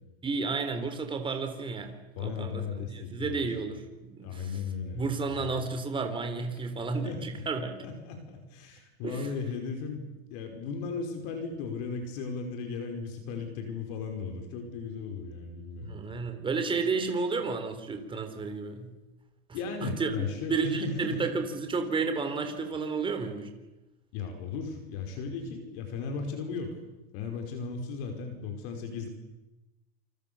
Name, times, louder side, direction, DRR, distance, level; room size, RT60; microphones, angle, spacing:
voice 1, 0.2-4.6 4.9-7.8 9.0-9.3 15.8-18.9 19.8-23.5, right 4 dB, 15° right, 7 dB, 3.6 m, -32 dB
voice 2, 2.2-3.4 4.2-5.6 7.0-7.2 7.8-16.0 19.5-21.2 24.1-26.8 27.1-29.1, left 5 dB, 50° left, 5 dB, 5.5 m, -36 dB
28.5 x 25.0 x 7.1 m, 1.0 s
supercardioid pair, 145°, 33 cm